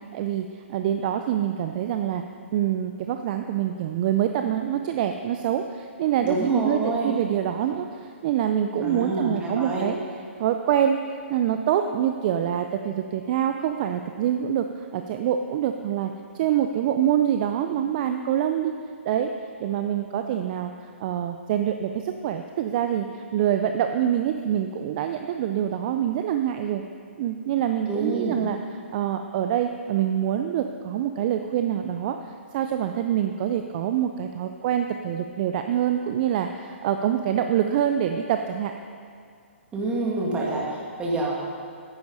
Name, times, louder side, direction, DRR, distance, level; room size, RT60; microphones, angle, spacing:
voice 1, 0.1-2.2 2.5-9.9 10.4-16.1 16.4-18.7 19.1-19.3 19.6-20.7 21.0-26.8 27.2-28.6 28.9-38.7, right 10 dB, 40° right, 6 dB, 0.5 m, -25 dB
voice 2, 6.2-7.1 8.8-9.8 27.9-28.4 39.7-41.3, right 2 dB, 15° right, -4 dB, 2.3 m, -27 dB
9.9 x 9.2 x 5.4 m, 2.2 s
figure-of-eight pair, 130°, 7 cm